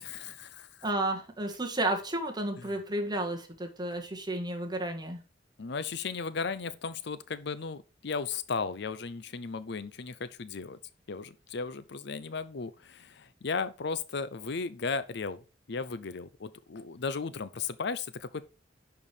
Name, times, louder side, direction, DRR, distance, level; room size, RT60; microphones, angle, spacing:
voice 1, 0.0-0.8 2.6-2.7 5.6-10.8 11.1-15.4 15.7-18.5, left 5 dB, 65° left, 0.6 m, -35 dB
voice 2, 0.8-5.2, right 1 dB, 25° right, 1.8 m, -32 dB
11.0 x 4.7 x 5.0 m
head